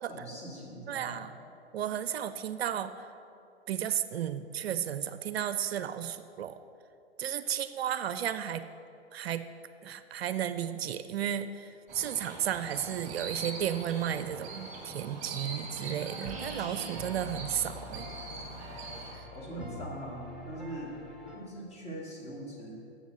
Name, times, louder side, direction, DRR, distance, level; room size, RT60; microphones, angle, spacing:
voice 1, 0.1-1.2 19.3-21.0 21.3-22.8, right 1 dB, 20° left, -3 dB, 2.1 m, -42 dB
voice 2, 0.9-1.3 1.7-3.1 3.7-6.6 7.2-8.6 9.1-9.4 9.8-18.1, right 10 dB, 65° right, 12 dB, 0.5 m, -33 dB
sound 1, 11.9-19.1, right 3 dB, 20° right, 2.1 m, -42 dB
sound 2, 16.1-21.3, left 1 dB, ahead, 1.3 m, -45 dB
7.5 x 7.1 x 6.3 m, 2.7 s
hypercardioid pair, 115°, 33 cm